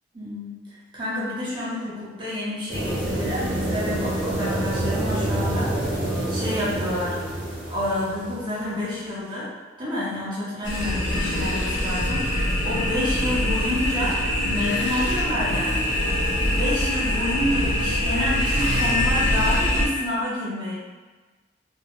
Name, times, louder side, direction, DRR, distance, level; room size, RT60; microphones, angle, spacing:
voice 1, 0.1-0.6 0.9-6.0 6.3-7.2 7.7-9.5 9.8-15.7 16.5-20.7, left 1 dB, 25° right, -8 dB, 0.6 m, -29 dB
sound 1, 2.7-8.6, right 1 dB, 40° right, 0.9 m, -27 dB
sound 2, 10.6-19.9, left 1 dB, 80° left, 0.7 m, -23 dB
2.5 x 2.1 x 2.9 m, 1.3 s
head